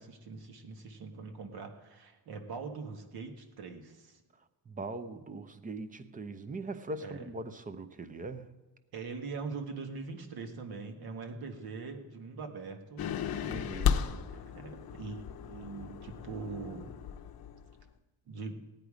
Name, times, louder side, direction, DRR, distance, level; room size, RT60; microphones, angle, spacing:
voice 1, 0.0-4.2 7.0-7.3 8.9-13.1 13.8-16.9 18.3-18.6, right 4 dB, 60° right, 5 dB, 1.6 m, -42 dB
voice 2, 4.7-8.5 13.5-14.0, right 2 dB, 20° right, 11 dB, 0.6 m, -41 dB
sound 1, 13.0-17.8, left 8 dB, 55° left, 0.8 m, -35 dB
18.0 x 9.3 x 5.0 m, 1.2 s
cardioid pair, 175°, 43 cm